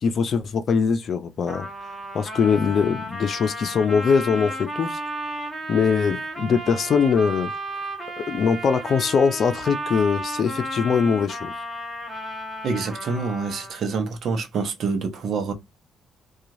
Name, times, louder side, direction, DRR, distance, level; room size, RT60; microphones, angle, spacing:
voice 1, 0.0-1.7 2.1-5.0 5.7-7.5 8.2-11.5, left 6 dB, 55° left, 0.6 m, -22 dB
Trumpet, 1.5-13.9, right 1 dB, 20° right, 1.4 m, -33 dB
voice 2, 12.6-15.5, right 4 dB, 65° right, 0.8 m, -26 dB
2.9 x 2.4 x 2.5 m
cardioid pair, 90°, 0 cm